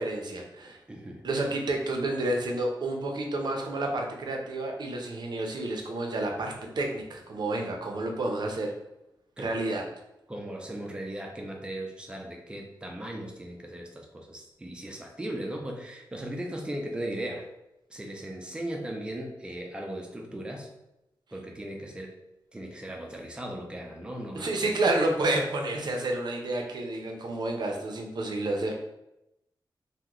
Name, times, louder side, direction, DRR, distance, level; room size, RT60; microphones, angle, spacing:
voice 1, 0.0-0.8 1.2-8.7 9.4-9.8 24.3-28.7, right 2 dB, 60° right, 2 dB, 0.5 m, -30 dB
voice 2, 0.9-1.3 9.4-9.6 10.3-17.5 17.9-20.7 21.3-22.1 22.5-24.7, right 1 dB, 10° right, 1 dB, 0.4 m, -37 dB
2.9 x 2.1 x 3.6 m, 0.89 s
wide cardioid pair, 170°, 8 cm